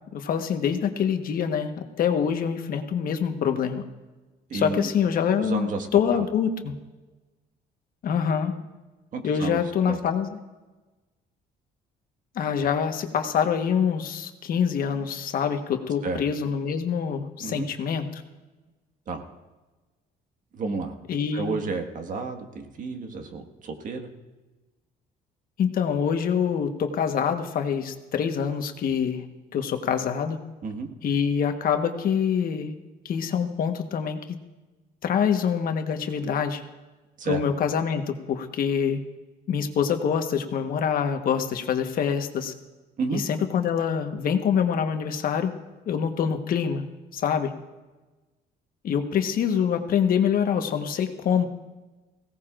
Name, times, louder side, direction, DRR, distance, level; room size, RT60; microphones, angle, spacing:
voice 1, 0.1-1.7 2.0-3.8 4.5-6.7 8.0-8.5 9.2-10.4 12.3-18.2 21.1-21.6 25.6-29.3 29.5-30.4 31.0-32.7 33.0-34.2 35.0-36.6 37.2-39.0 39.5-42.5 43.1-45.5 45.9-46.8 47.1-47.5 48.8-51.5, left 7 dB, 60° left, 6 dB, 1.3 m, -25 dB
voice 2, 4.5-4.9 5.4-5.9 6.1-6.2 9.1-9.6 9.9-10.0 16.0-16.2 17.4-17.7 19.1-19.2 20.5-20.9 21.3-24.1 30.6-30.9 37.2-37.4 43.0-43.2, right 4 dB, 50° right, 5 dB, 1.7 m, -31 dB
20.5 x 17.0 x 2.5 m, 1.2 s
cardioid pair, 110°, 17 cm